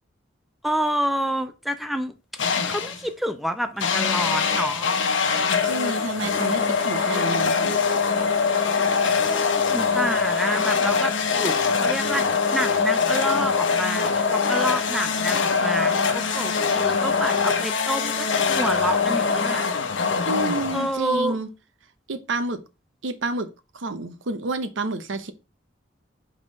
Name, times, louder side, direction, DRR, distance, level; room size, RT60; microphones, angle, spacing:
voice 1, 0.6-2.1 2.6-4.9 9.2-19.6 20.7-21.4, equal, ahead, 0.5 m, -28 dB
sound 1, 2.4-3.1 3.8-21.2, left 5 dB, 80° left, 0.9 m, -23 dB
voice 2, 5.6-7.8 20.3-21.5 22.1-22.6 23.0-23.5 23.7-25.3, right 2 dB, 85° right, 0.8 m, -29 dB
5.4 x 3.7 x 5.1 m
head